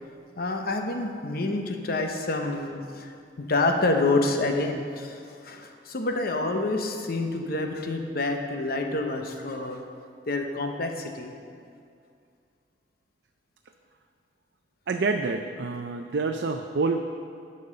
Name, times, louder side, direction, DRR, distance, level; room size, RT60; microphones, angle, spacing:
voice 1, 0.4-3.1 3.4-9.8 10.3-11.3, left 2 dB, 60° left, 4 dB, 0.9 m, -28 dB
voice 2, 14.9-17.0, right 3 dB, 70° right, 5 dB, 0.5 m, -27 dB
10.5 x 5.4 x 6.5 m, 2.3 s
head